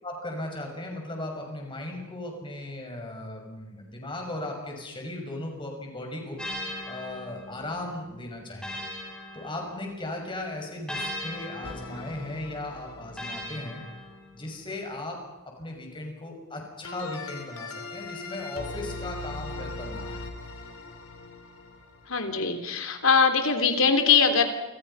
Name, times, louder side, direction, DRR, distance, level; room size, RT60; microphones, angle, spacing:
voice 1, 0.0-6.4 6.9-8.9 9.3-13.8 14.3-15.2 15.6-20.2, left 1 dB, 20° left, 1 dB, 6.2 m, -37 dB
sound 1, 6.4-10.1 10.9-14.6, left 1 dB, 5° left, 7.7 m, -39 dB
sound 2, 11.6-13.8 16.8-22.5, left 3 dB, 90° left, 3.7 m, -40 dB
voice 2, 22.1-24.5, left 5 dB, 70° left, 6 dB, 3.3 m, -22 dB
29.0 x 26.5 x 5.7 m, 1.1 s
head